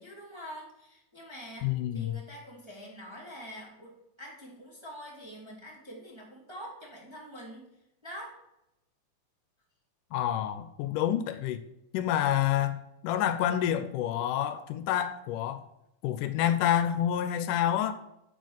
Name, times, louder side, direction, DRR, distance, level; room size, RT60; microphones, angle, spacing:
voice 1, 0.0-1.7 1.9-3.9 4.2-7.7 8.0-8.3, equal, 10° right, 2.2 m, -45 dB
voice 2, 1.6-2.2 10.1-11.6 11.9-15.7 16.0-17.9, left 11 dB, 80° left, 2.2 m, -28 dB
8.2 x 6.7 x 6.5 m
omnidirectional pair, 3.7 m